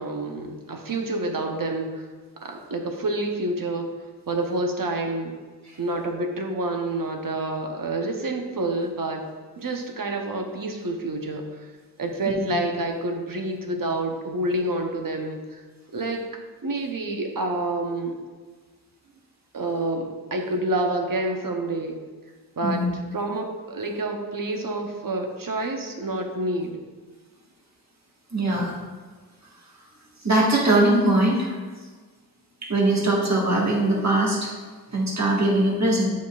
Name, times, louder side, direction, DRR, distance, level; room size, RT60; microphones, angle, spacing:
voice 1, 0.0-2.1 2.4-3.9 4.3-5.4 5.8-9.2 9.6-11.7 12.0-15.6 15.9-16.2 16.6-18.2 19.5-22.0 22.6-22.8 23.1-26.8, right 2 dB, 60° right, 3 dB, 0.9 m, -28 dB
voice 2, 28.3-28.7 30.2-31.6 32.6-34.5 34.9-36.1, right 1 dB, 45° right, -4 dB, 1.6 m, -21 dB
8.0 x 5.2 x 2.4 m, 1.4 s
wide cardioid pair, 45°, 38 cm